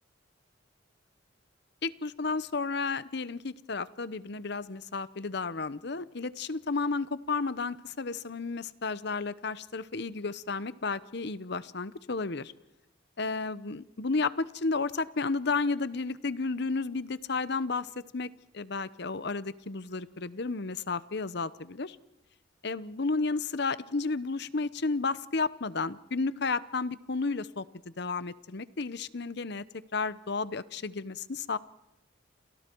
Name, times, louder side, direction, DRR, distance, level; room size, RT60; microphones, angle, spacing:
voice 1, 1.8-12.5 13.2-18.3 18.5-22.0 22.6-29.6 29.9-31.6, left 4 dB, 60° left, 16 dB, 0.9 m, -32 dB
30.0 x 27.5 x 4.6 m, 0.90 s
head